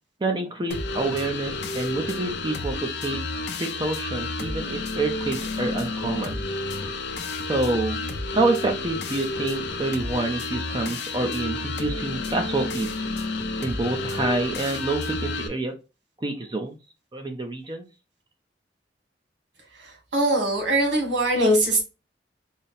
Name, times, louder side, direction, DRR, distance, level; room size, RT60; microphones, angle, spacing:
voice 1, 0.2-3.2 3.6-6.4 7.4-8.0 8.3-12.9 13.6-15.8 16.2-16.8 17.1-17.8, right 2 dB, 25° right, 4 dB, 0.5 m, -27 dB
sound 1, 0.7-15.5, left 2 dB, 70° left, 0.6 m, -30 dB
voice 2, 19.8-21.8, right 1 dB, 90° right, 2 dB, 1.6 m, -22 dB
4.0 x 2.0 x 4.0 m, 0.29 s
head